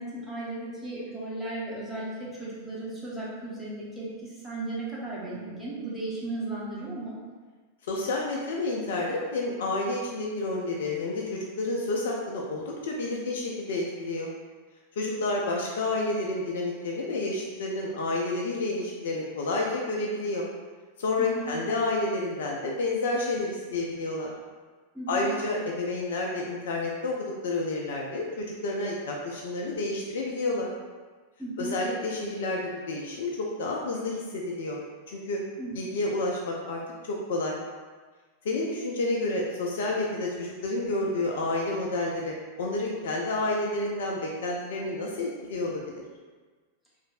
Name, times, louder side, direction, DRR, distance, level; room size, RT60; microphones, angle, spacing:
voice 1, 0.0-7.2 21.2-21.5 24.9-25.3 31.4-31.8 35.6-35.8, right 2 dB, ahead, -10 dB, 1.0 m, -35 dB
voice 2, 7.9-14.3 15.0-20.5 21.0-24.3 25.1-30.7 31.6-34.8 35.1-35.4 35.8-37.6 38.4-46.0, left 2 dB, 60° left, -1 dB, 0.4 m, -30 dB
3.0 x 2.5 x 2.4 m, 1.4 s
figure-of-eight pair, 90°, 0 cm